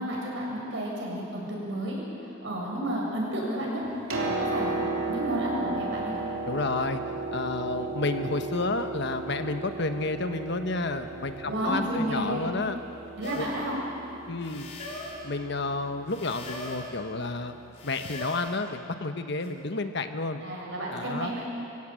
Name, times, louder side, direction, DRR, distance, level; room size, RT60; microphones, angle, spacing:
voice 1, 0.0-2.1 2.4-3.8 4.1-6.3 11.4-12.4 13.2-13.8 20.4-21.4, right 1 dB, 60° right, -3 dB, 7.0 m, -31 dB
Piano, 3.8-17.6 18.7-18.8, right 3 dB, 85° right, 3.5 m, -35 dB
voice 2, 6.5-12.8 13.4-13.5 14.3-14.8 15.2-17.6 17.8-20.4 20.9-21.3, left 3 dB, 55° left, 8 dB, 1.1 m, -31 dB
sound 1, 13.2-13.6 14.4-15.3 16.1-16.9 17.8-18.6 19.4-19.5, left 2 dB, 35° left, 3.7 m, -40 dB
25.0 x 16.0 x 8.9 m, 2.9 s
head